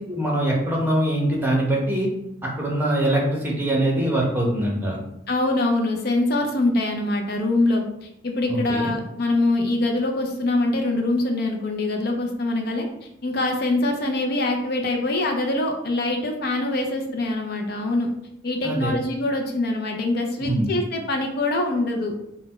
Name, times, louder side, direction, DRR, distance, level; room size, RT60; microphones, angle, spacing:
voice 1, 0.1-2.1 2.4-5.0 8.5-8.9 18.6-18.9 20.4-20.7, right 1 dB, 10° right, -2 dB, 0.8 m, -23 dB
voice 2, 5.3-12.9 13.2-18.1 18.4-22.1, left 2 dB, 55° left, 3 dB, 0.5 m, -24 dB
4.0 x 2.2 x 4.1 m, 0.81 s
head